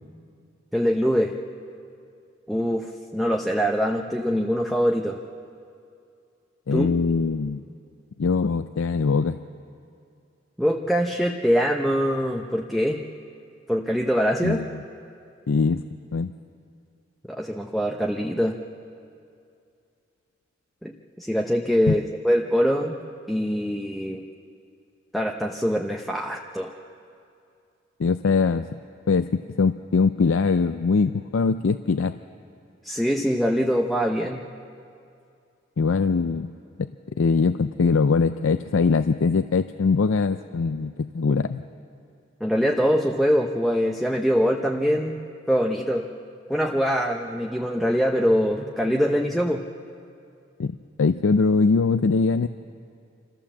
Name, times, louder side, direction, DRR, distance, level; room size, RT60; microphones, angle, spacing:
voice 1, 0.7-1.3 2.5-2.9 3.1-5.2 6.7-6.9 10.6-13.0 13.7-14.6 17.3-18.6 20.8-22.9 23.3-24.2 25.1-26.7 32.8-34.5 42.4-45.2 45.5-46.0 46.5-49.6, equal, ahead, 1 dB, 0.7 m, -23 dB
voice 2, 6.7-7.6 8.2-9.4 14.4-14.8 15.5-15.8 16.1-16.3 21.9-22.0 28.0-28.8 29.1-32.1 35.8-36.5 36.8-36.9 37.2-41.6 50.6-50.7 51.0-52.5, left 4 dB, 85° left, 9 dB, 0.5 m, -22 dB
26.5 x 14.5 x 7.3 m, 2.5 s
head